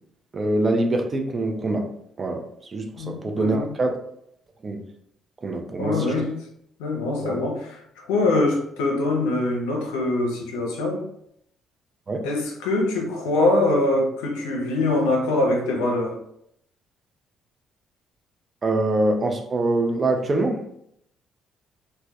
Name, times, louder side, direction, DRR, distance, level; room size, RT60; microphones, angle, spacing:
voice 1, 0.3-1.9 2.2-4.0 4.6-4.8 5.4-6.1 7.2-7.4 12.1-12.3 18.6-20.7, right 2 dB, 40° right, 0.4 m, -24 dB
voice 2, 3.0-3.7 5.8-6.3 6.8-7.8 8.1-11.0 12.2-16.1, left 2 dB, 80° left, 0.5 m, -23 dB
2.1 x 2.1 x 2.7 m
hypercardioid pair, 50°, 0 cm